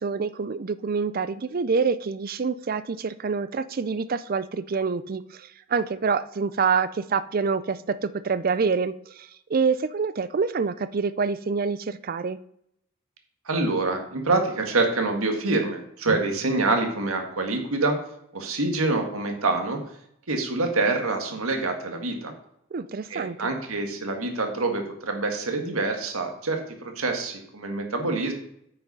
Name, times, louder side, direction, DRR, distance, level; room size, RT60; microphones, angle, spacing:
voice 1, 0.0-12.4 22.7-23.5, right 5 dB, 45° right, 16 dB, 0.4 m, -26 dB
voice 2, 13.4-18.0 18.3-19.8 20.3-22.3 23.1-28.3, right 3 dB, 80° right, 4 dB, 1.7 m, -26 dB
9.0 x 5.7 x 5.4 m, 0.73 s
head